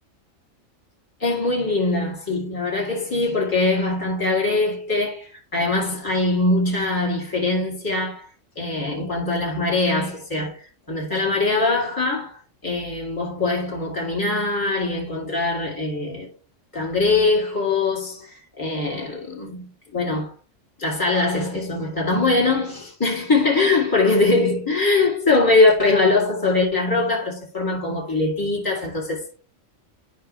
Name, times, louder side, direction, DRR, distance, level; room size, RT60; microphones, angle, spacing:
voice 1, 1.2-8.3 8.6-16.3 16.7-20.3 20.8-29.3, left 3 dB, 15° left, 2.4 m, -22 dB
12.0 x 4.7 x 3.2 m
omnidirectional pair, 1.3 m